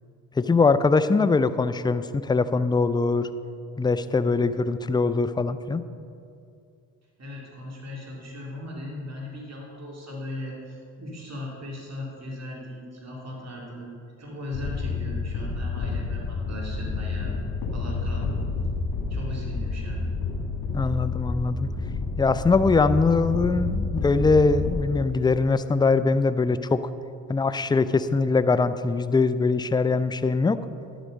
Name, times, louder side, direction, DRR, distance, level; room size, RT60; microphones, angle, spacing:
voice 1, 0.4-3.3 3.8-5.8 20.7-21.7 22.2-26.8 27.3-30.6, left 4 dB, 10° left, 13 dB, 0.5 m, -22 dB
voice 2, 7.2-13.9 14.2-17.3 17.7-18.3 19.1-20.1, left 1 dB, 40° right, -2 dB, 2.8 m, -38 dB
sound 1, 14.5-24.8, left 4 dB, 75° left, 2.2 m, -29 dB
11.0 x 8.0 x 5.3 m, 2.4 s
hypercardioid pair, 45°, 42 cm